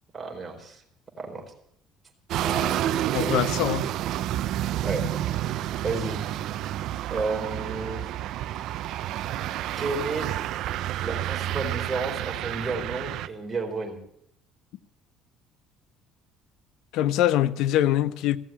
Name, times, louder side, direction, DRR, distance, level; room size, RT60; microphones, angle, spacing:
voice 1, 0.1-0.8 1.2-1.5 2.4-3.4 4.8-5.1 5.8-6.2 7.1-8.1 9.8-10.3 11.0-14.0, right 3 dB, 20° right, 4.4 m, -32 dB
sound 1, 2.3-13.3, right 12 dB, 65° right, 0.7 m, -29 dB
voice 2, 3.1-3.8 16.9-18.4, left 12 dB, 70° left, 0.7 m, -23 dB
16.0 x 7.5 x 8.6 m
supercardioid pair, 95°, 0 cm